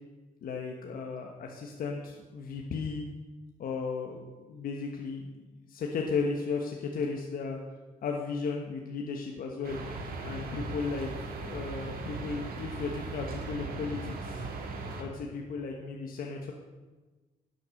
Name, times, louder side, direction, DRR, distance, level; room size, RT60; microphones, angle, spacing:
voice 1, 0.4-3.1 3.6-5.4 5.7-7.6 8.0-9.8 10.2-14.4 15.0-16.5, left 4 dB, 70° left, 1 dB, 1.3 m, -35 dB
sound 1, 9.6-15.0, right 3 dB, 75° right, 2.0 m, -38 dB
11.0 x 8.3 x 6.5 m, 1.2 s
cardioid pair, 110°, 15 cm